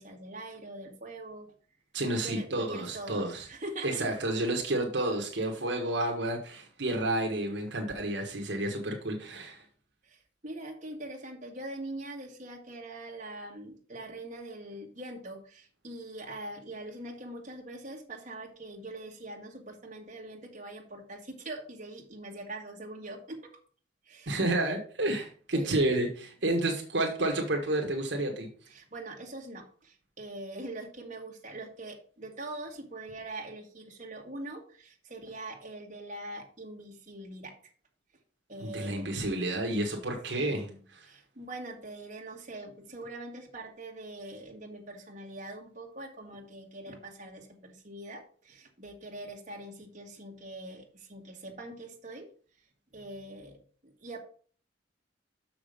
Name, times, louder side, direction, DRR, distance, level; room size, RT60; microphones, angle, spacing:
voice 1, 0.0-1.5 2.1-4.1 10.0-23.4 24.1-24.5 25.5-25.8 28.7-37.5 38.5-39.1 40.4-52.3 52.9-53.6 53.8-54.2, right 2 dB, 40° right, -1 dB, 1.8 m, -43 dB
voice 2, 1.9-3.5 3.8-9.6 24.3-28.5 38.6-41.1, right 1 dB, 65° right, 2 dB, 1.4 m, -30 dB
6.7 x 6.0 x 5.1 m, 0.43 s
head